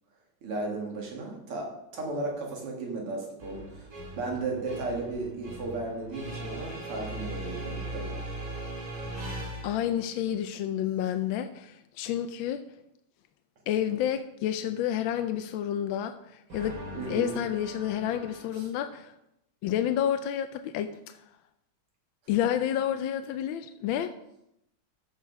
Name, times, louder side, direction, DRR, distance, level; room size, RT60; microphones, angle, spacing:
voice 1, 0.4-8.2 16.9-17.4 18.5-18.7, right 3 dB, 85° right, -1 dB, 3.1 m, -35 dB
sound 1, 3.4-10.0 16.5-18.4, right 1 dB, 60° right, 3.6 m, -39 dB
voice 2, 9.3-12.6 13.7-16.8 17.1-19.1 19.6-21.2 22.3-24.1, left 10 dB, 75° left, 8 dB, 1.3 m, -30 dB
14.0 x 5.9 x 4.7 m, 0.82 s
omnidirectional pair, 2.4 m